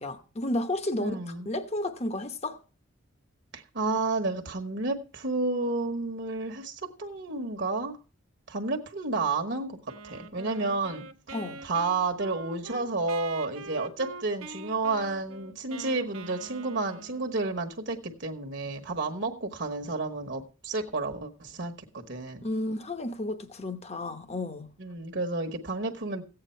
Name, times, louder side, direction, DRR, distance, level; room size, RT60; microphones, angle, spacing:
voice 1, 0.0-2.6 11.3-11.6 22.4-24.7, left 1 dB, 30° left, 1.0 m, -32 dB
voice 2, 1.0-1.5 3.5-8.0 8.5-9.8 10.0-11.3 11.6-22.4 24.8-26.2, right 3 dB, 55° right, 1.2 m, -31 dB
Wind instrument woodwind instrument, 9.9-17.6, right 3 dB, 85° right, 1.1 m, -44 dB
15.0 x 8.9 x 4.4 m
head